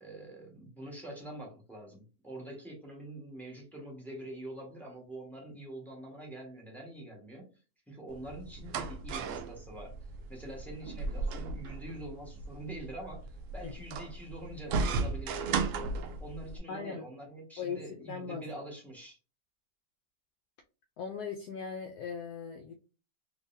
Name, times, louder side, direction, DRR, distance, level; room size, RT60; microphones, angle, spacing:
voice 1, 0.0-9.9 10.3-15.5 16.2-19.2, right 1 dB, ahead, -1 dB, 1.1 m, -45 dB
sound 1, 8.1-16.6, right 4 dB, 70° right, 0.7 m, -36 dB
voice 2, 16.7-17.3 17.6-18.4 21.0-22.7, left 6 dB, 75° left, 4 dB, 1.1 m, -39 dB
3.8 x 3.0 x 2.6 m, 0.33 s
omnidirectional pair, 1.8 m